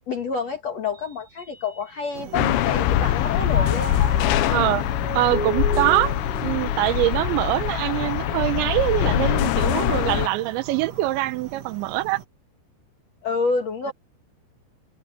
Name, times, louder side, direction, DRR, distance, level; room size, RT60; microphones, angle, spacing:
voice 1, 0.1-4.1 13.2-13.9, left 4 dB, 50° left, 2.2 m, -28 dB
Mallet percussion, 0.9-2.3 2.7-8.1, equal, ahead, 5.7 m, -36 dB
sound 1, 2.1-12.2, right 8 dB, 55° right, 1.9 m, -41 dB
sound 2, 2.3-10.3, left 13 dB, 80° left, 3.2 m, -23 dB
voice 2, 4.5-4.9 5.1-12.2, right 17 dB, 80° right, 3.3 m, -24 dB
omnidirectional pair, 5.3 m